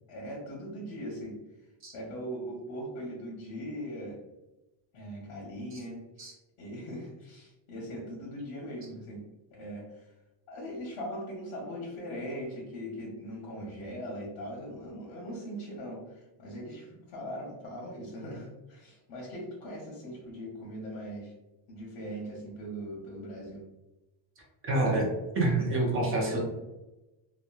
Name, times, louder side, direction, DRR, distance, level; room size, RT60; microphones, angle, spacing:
voice 1, 0.1-1.4 1.9-4.2 4.9-6.3 6.6-9.2 9.5-10.1 10.5-21.3 21.7-23.6, equal, 60° left, -4 dB, 0.9 m, -40 dB
voice 2, 24.6-25.1 25.3-26.4, right 2 dB, 30° right, -2 dB, 0.6 m, -27 dB
2.9 x 2.3 x 2.3 m, 1.0 s
cardioid pair, 170°, 48 cm